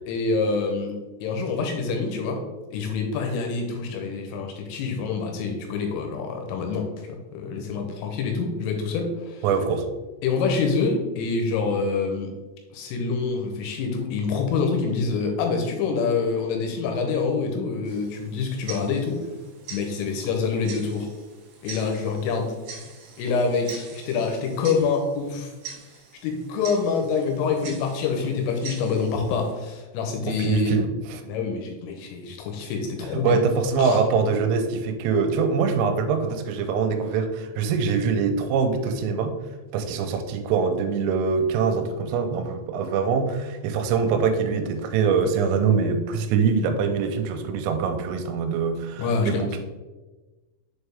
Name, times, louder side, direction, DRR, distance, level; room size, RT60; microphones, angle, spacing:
voice 1, 0.1-2.4 2.7-6.9 7.3-9.4 10.2-12.3 12.7-19.2 19.7-21.1 21.6-22.6 23.2-25.5 26.2-30.8 31.2-33.4 33.8-34.0 49.0-49.5, left 4 dB, 85° left, 3 dB, 3.2 m, -26 dB
voice 2, 9.4-9.9 30.2-31.2 33.2-39.4 39.7-49.6, right 5 dB, 85° right, 6 dB, 3.2 m, -24 dB
Tick-tock, 17.8-29.5, right 5 dB, 70° right, 3.0 m, -43 dB
6.8 x 4.4 x 3.4 m, 1.2 s
omnidirectional pair, 5.9 m